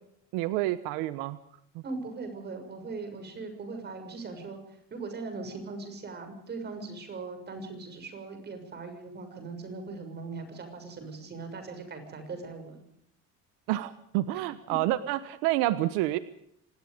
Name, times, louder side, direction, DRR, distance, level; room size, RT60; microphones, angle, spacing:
voice 1, 0.3-1.4 1.7-1.8 13.7-16.2, right 15 dB, 90° right, 13 dB, 1.3 m, -28 dB
voice 2, 1.8-4.6 4.9-12.8, right 3 dB, 30° right, 7 dB, 6.7 m, -40 dB
25.5 x 19.5 x 5.2 m, 0.72 s
cardioid pair, 140°, 33 cm